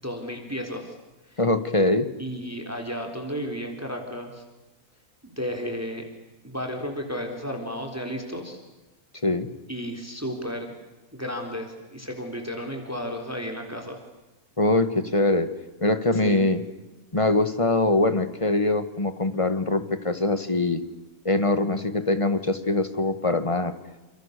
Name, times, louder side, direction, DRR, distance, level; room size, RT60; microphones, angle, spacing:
voice 1, 0.0-0.9 1.3-1.4 2.2-4.4 5.2-6.0 6.4-8.6 9.7-10.8 11.1-14.0 16.2-16.5, equal, 10° right, 4 dB, 3.8 m, -33 dB
voice 2, 1.4-2.1 9.2-9.5 14.6-15.5 15.8-16.6 17.1-20.8 21.3-23.7, left 2 dB, 20° left, 11 dB, 1.9 m, -23 dB
29.5 x 28.0 x 6.8 m, 1.1 s
omnidirectional pair, 1.6 m